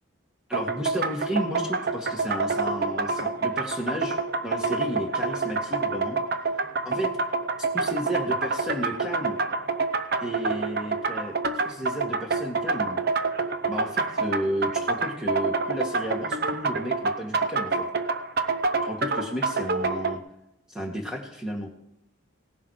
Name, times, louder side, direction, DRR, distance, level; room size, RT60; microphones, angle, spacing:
voice 1, 0.5-6.2 6.8-7.1 7.7-9.4 10.2-11.4 11.6-13.0 13.7-17.8 18.8-20.2 20.7-21.7, equal, 5° right, 1 dB, 2.0 m, -32 dB
sound 1, 0.5-20.2, right 3 dB, 50° right, 0.7 m, -27 dB
17.5 x 7.4 x 5.0 m, 0.85 s
head